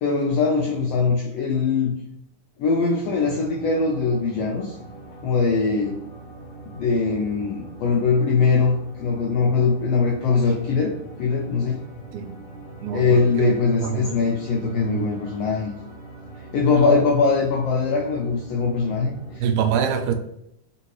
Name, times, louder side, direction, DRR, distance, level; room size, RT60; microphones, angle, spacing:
voice 1, 0.0-2.0 2.6-4.7 5.2-6.0 6.7-11.8 12.9-15.7 16.5-19.4, left 4 dB, 85° left, -1 dB, 1.4 m, -21 dB
sound 1, 3.0-19.4, right 2 dB, 50° left, 1.3 m, -41 dB
voice 2, 12.8-13.5 13.8-14.2 14.6-15.1 16.7-17.0 19.4-20.1, right 7 dB, 90° right, 8 dB, 2.0 m, -25 dB
3.8 x 3.7 x 3.0 m, 0.78 s
omnidirectional pair, 3.3 m